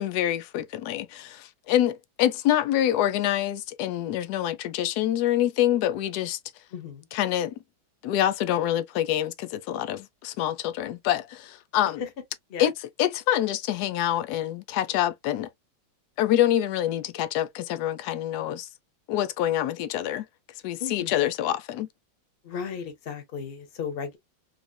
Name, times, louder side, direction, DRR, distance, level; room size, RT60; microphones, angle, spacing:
voice 1, 0.0-6.4 7.1-7.5 8.0-12.0 12.6-12.7 13.0-15.5 16.2-18.7 19.1-20.2 20.6-21.9, left 12 dB, 75° left, 0.9 m, -26 dB
voice 2, 6.7-7.1 12.0-12.1 12.5-12.7 20.8-21.3 22.4-24.2, left 6 dB, 40° left, 0.9 m, -35 dB
3.9 x 3.2 x 2.2 m
omnidirectional pair, 2.2 m